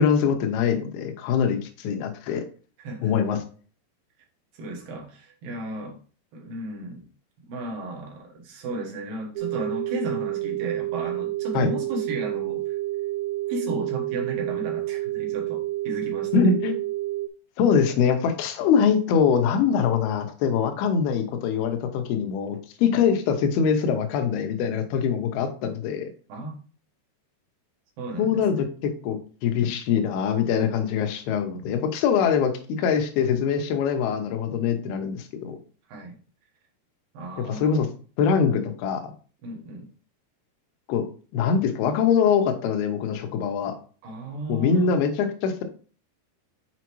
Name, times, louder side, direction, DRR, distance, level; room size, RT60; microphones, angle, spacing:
voice 1, 0.0-2.4 3.0-3.4 11.5-11.7 16.3-16.7 17.6-26.1 28.2-35.6 37.5-37.9 38.2-39.0 40.9-41.1 41.3-43.8 44.5-45.6, left 6 dB, 75° left, 6 dB, 2.6 m, -23 dB
voice 2, 2.8-3.1 4.5-6.0 6.3-7.1 7.5-12.8 13.5-16.4 26.3-26.5 28.0-28.4 35.9-36.2 37.1-37.7 39.4-39.9 44.0-44.9, right 2 dB, 65° right, 0 dB, 2.7 m, -34 dB
sound 1, 9.4-17.3, right 16 dB, 85° right, 2.7 m, -29 dB
7.0 x 5.0 x 3.1 m, 0.40 s
omnidirectional pair, 5.0 m